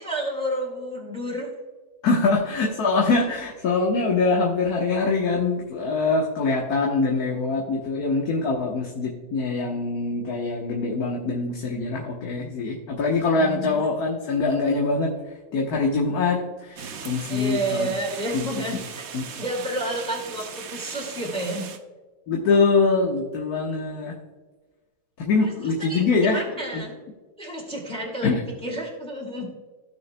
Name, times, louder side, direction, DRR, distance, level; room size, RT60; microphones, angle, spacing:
voice 1, 0.0-1.5 13.3-13.8 17.3-19.0 19.4-21.7 25.9-26.9 27.4-29.5, right 1 dB, 5° left, -2 dB, 2.0 m, -30 dB
voice 2, 2.0-15.1 15.5-17.9 18.3-18.5 19.1-19.2 22.3-24.1 25.2-26.4 26.7-26.8 28.2-28.4, left 3 dB, 60° left, -1 dB, 1.6 m, -23 dB
sound 1, 16.8-21.8, right 7 dB, 60° right, 1.1 m, -38 dB
16.0 x 6.3 x 2.2 m, 1.3 s
omnidirectional pair, 1.9 m